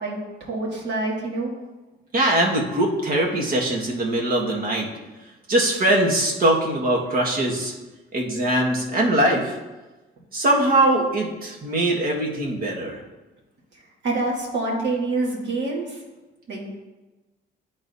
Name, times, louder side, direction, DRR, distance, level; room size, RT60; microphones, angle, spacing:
voice 1, 0.0-1.5 14.0-16.0 16.5-16.8, right 2 dB, 65° right, -4 dB, 2.2 m, -26 dB
voice 2, 2.1-4.9 5.5-7.7 8.1-9.6 10.3-13.0, right 1 dB, 50° right, -1 dB, 1.6 m, -21 dB
10.5 x 4.0 x 2.7 m, 1.1 s
cardioid pair, 90°, 20 cm